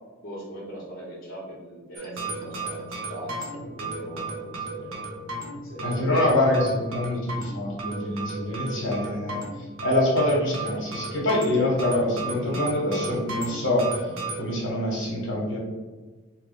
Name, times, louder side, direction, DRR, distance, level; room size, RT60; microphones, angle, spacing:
voice 1, 0.2-5.0 5.6-6.0, equal, 45° left, -8 dB, 1.0 m, -40 dB
sound 1, 2.0-14.4, right 3 dB, 85° right, 0.8 m, -34 dB
voice 2, 5.8-9.4 9.8-13.9 14.4-15.6, left 1 dB, 65° left, -3 dB, 1.2 m, -25 dB
3.0 x 2.5 x 4.0 m, 1.3 s
head